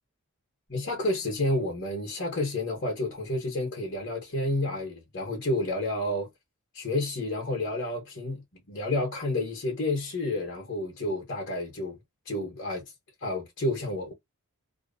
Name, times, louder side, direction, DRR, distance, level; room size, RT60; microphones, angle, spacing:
voice 1, 0.7-6.3 6.7-12.0 12.2-12.8 13.2-14.1, left 2 dB, 45° left, 1.1 m, -30 dB
2.8 x 2.0 x 2.6 m
head